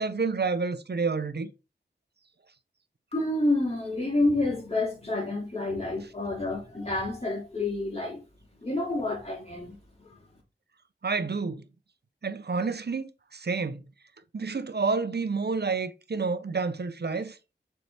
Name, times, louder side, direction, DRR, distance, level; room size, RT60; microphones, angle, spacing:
voice 1, 0.0-1.5 11.0-11.6 12.2-13.8 14.3-17.4, right 4 dB, 55° right, 0.8 m, -29 dB
voice 2, 3.1-8.2 8.6-10.2, left 2 dB, 30° left, 3.5 m, -29 dB
6.8 x 4.6 x 3.4 m
wide cardioid pair, 45°, 20 cm